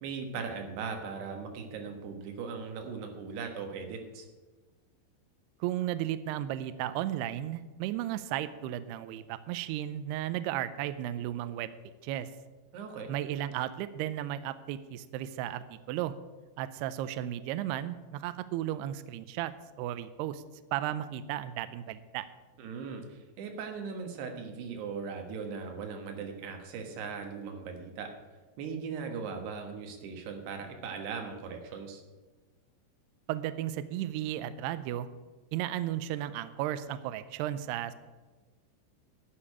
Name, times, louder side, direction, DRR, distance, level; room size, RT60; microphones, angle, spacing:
voice 1, 0.0-4.3 12.7-13.1 22.6-28.1 28.6-32.0, right 5 dB, 70° right, 4 dB, 3.3 m, -39 dB
voice 2, 5.6-11.7 12.0-12.3 13.1-16.1 16.6-19.5 19.8-20.4 20.7-22.3 33.3-35.1 35.5-37.9, right 12 dB, 90° right, 13 dB, 2.3 m, -34 dB
11.0 x 6.7 x 8.6 m, 1.3 s
omnidirectional pair, 5.3 m